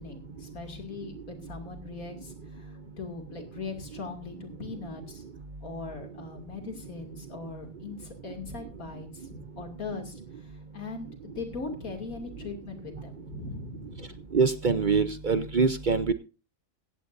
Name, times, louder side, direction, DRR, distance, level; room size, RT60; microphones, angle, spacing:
voice 1, 0.0-5.2 5.6-14.2, left 4 dB, 90° left, 4 dB, 3.0 m, -40 dB
voice 2, 14.3-16.1, right 5 dB, 45° right, 11 dB, 0.7 m, -24 dB
16.5 x 15.5 x 2.6 m, 0.33 s
omnidirectional pair, 1.4 m